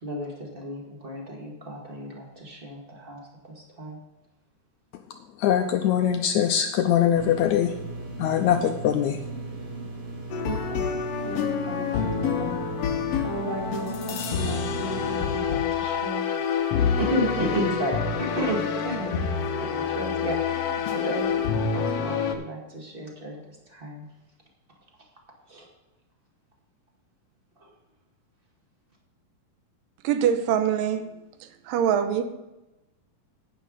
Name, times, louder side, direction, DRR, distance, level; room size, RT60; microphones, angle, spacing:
voice 1, 0.0-3.2 3.5-4.0 8.4-8.5 10.4-10.8 11.2-12.6 13.2-24.1 25.5-25.7 27.6-27.7, equal, 25° right, -1 dB, 1.4 m, -33 dB
voice 2, 5.4-7.7 8.2-9.2, left 10 dB, 85° left, 6 dB, 1.6 m, -22 dB
sound 1, 7.2-15.2, right 3 dB, 45° right, 4.0 m, -37 dB
sound 2, 10.3-22.3, left 6 dB, 70° left, 1.5 m, -27 dB
voice 3, 30.0-31.1 31.7-32.2, right 9 dB, 90° right, 9 dB, 2.5 m, -23 dB
11.5 x 9.3 x 4.0 m, 1.0 s
omnidirectional pair, 3.9 m